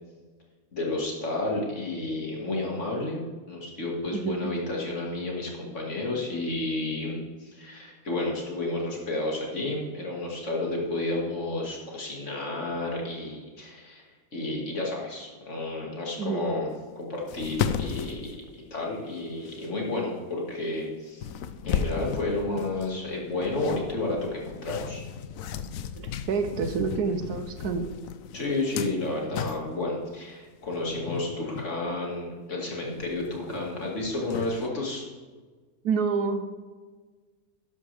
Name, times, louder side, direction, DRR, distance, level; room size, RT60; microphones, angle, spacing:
voice 1, 0.7-3.2 3.5-14.0 14.3-16.7 17.0-18.3 18.5-21.3 21.6-25.0 26.1-26.2 28.3-35.1, left 2 dB, 45° left, -2 dB, 2.6 m, -31 dB
voice 2, 4.1-4.5 16.2-16.5 26.0-27.9 35.8-36.5, right 5 dB, 70° right, 8 dB, 1.3 m, -28 dB
sound 1, 17.0-17.1 17.3-19.1 19.5-19.7 20.7-20.8 21.2-30.0 30.6-31.7 32.1-32.2 32.5-34.7, left 8 dB, 65° left, 0.9 m, -35 dB
12.5 x 10.5 x 3.5 m, 1.4 s
omnidirectional pair, 1.8 m